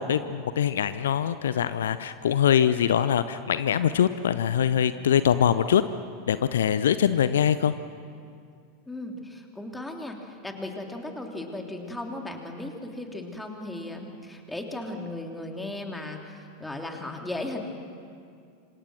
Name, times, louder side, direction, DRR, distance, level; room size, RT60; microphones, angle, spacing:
voice 1, 0.0-5.8 6.3-7.7, left 9 dB, 65° left, 13 dB, 0.6 m, -23 dB
voice 2, 8.9-17.6, left 2 dB, 5° left, 2 dB, 3.2 m, -36 dB
27.0 x 26.0 x 6.3 m, 2.3 s
figure-of-eight pair, 85°, 0 cm